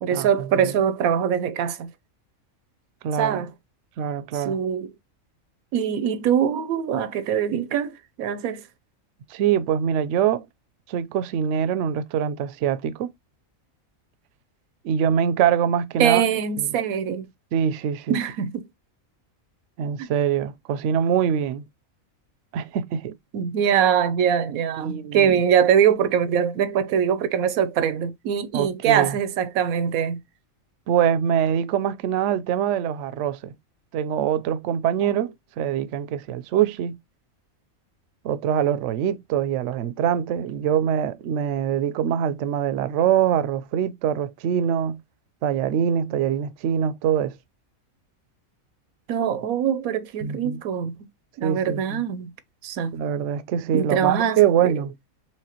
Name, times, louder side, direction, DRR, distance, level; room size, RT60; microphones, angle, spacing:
voice 1, 0.0-1.9 3.2-3.5 4.3-4.9 5.7-8.6 16.0-17.3 18.1-18.7 20.0-20.1 23.3-30.2 49.1-51.1 51.4-52.3 52.6-52.9 53.7-54.7, right 8 dB, 85° right, 1.1 m, -23 dB
voice 2, 3.0-3.4 4.0-4.6 9.3-10.5 10.9-13.1 14.8-16.3 16.6-16.7 17.5-18.2 19.8-21.6 22.5-23.1 24.8-25.4 28.5-29.2 30.9-33.5 33.9-36.9 38.2-45.0 45.4-47.4 50.2-50.6 51.4-52.0 52.9-54.9, right 9 dB, 65° right, 0.8 m, -24 dB
4.8 x 3.5 x 2.8 m
omnidirectional pair, 1.4 m